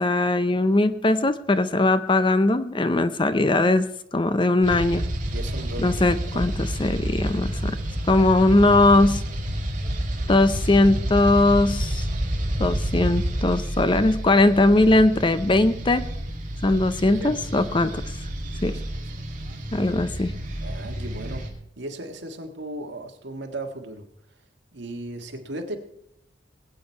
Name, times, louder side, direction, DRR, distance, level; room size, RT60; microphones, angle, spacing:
voice 1, 0.0-5.0 5.8-7.8 8.1-9.2 10.3-12.0 12.6-16.0 16.6-18.0 18.6-18.8 19.7-20.3, left 2 dB, 25° left, 12 dB, 0.6 m, -20 dB
sound 1, 4.6-21.5, right 1 dB, 45° right, 2.3 m, -29 dB
voice 2, 5.3-6.0 6.3-6.5 17.1-17.7 18.6-19.1 20.6-21.5 21.8-24.0 24.7-25.8, right 1 dB, 75° right, 4 dB, 1.6 m, -36 dB
20.5 x 8.6 x 4.5 m, 0.75 s
head